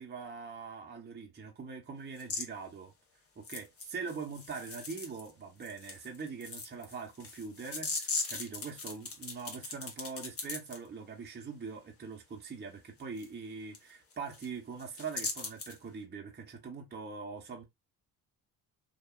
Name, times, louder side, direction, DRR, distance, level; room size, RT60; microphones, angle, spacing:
voice 1, 0.0-2.9 3.4-17.6, right 5 dB, 25° right, 0.7 m, -43 dB
sound 1, 2.2-2.5 3.4-5.3 5.6-10.8 13.2-13.3 13.7-13.8 14.1-14.5 14.8-15.8, left 4 dB, 35° left, 0.9 m, -39 dB
2.8 x 2.3 x 2.3 m
cardioid pair, 90°, 41 cm